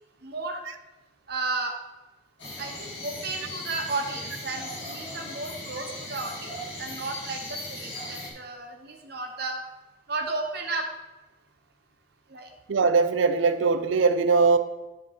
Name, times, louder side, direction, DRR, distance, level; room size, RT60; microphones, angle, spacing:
voice 1, 0.2-0.6 1.3-1.7 2.6-9.6 10.1-10.9 12.3-12.5, right 3 dB, 55° right, 3 dB, 0.9 m, -33 dB
sound 1, 2.4-8.3, left 1 dB, 70° left, 2.1 m, -38 dB
voice 2, 12.7-14.6, right 4 dB, 85° right, 10 dB, 0.5 m, -21 dB
10.0 x 3.6 x 4.3 m, 1.1 s
head